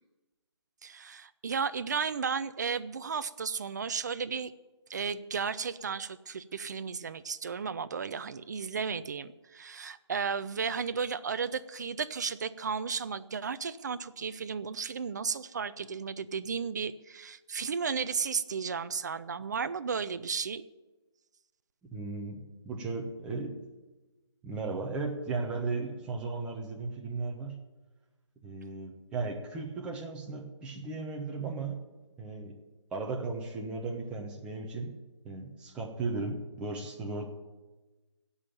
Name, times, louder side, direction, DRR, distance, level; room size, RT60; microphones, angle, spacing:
voice 1, 0.8-4.5 4.9-20.6, right 6 dB, 40° right, 14 dB, 0.5 m, -34 dB
voice 2, 21.9-23.6 24.4-27.6 28.4-31.8 32.2-32.6 32.9-35.0 35.2-37.2, right 3 dB, 5° right, 0 dB, 1.0 m, -36 dB
16.0 x 5.6 x 9.0 m, 1.2 s
figure-of-eight pair, 150°, 15 cm